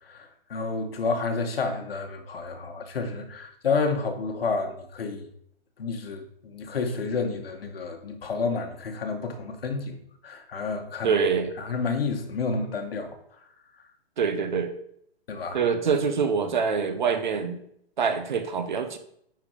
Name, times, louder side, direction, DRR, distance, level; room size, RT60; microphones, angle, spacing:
voice 1, 0.0-5.3 5.8-11.2 11.6-13.2 15.3-15.6, left 4 dB, 75° left, 4 dB, 1.9 m, -30 dB
voice 2, 11.0-11.5 14.2-14.7 15.5-17.6 18.0-19.0, right 6 dB, 50° right, 8 dB, 1.1 m, -25 dB
10.0 x 4.7 x 5.0 m, 0.70 s
hypercardioid pair, 180°, 30 cm